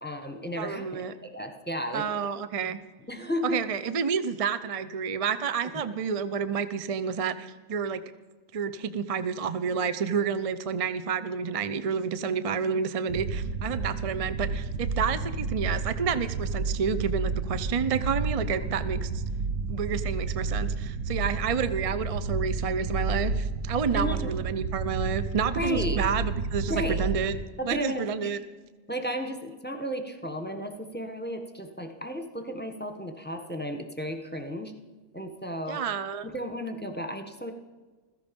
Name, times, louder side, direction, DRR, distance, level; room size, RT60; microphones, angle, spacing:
voice 1, 0.0-2.0 2.6-2.8 3.1-3.6 5.7-5.9 23.9-24.3 25.5-26.1 26.7-27.1 27.6-28.3 28.9-34.8 35.1-35.8 36.2-37.5, equal, 10° left, 6 dB, 1.3 m, -33 dB
voice 2, 0.6-1.1 1.9-2.8 3.4-8.0 8.5-19.2 19.7-27.3 27.6-28.4 35.7-36.3, right 6 dB, 40° right, 12 dB, 0.5 m, -29 dB
sound 1, 13.1-27.4, right 4 dB, 70° right, 1.2 m, -31 dB
16.0 x 14.5 x 5.3 m, 1.3 s
omnidirectional pair, 1.4 m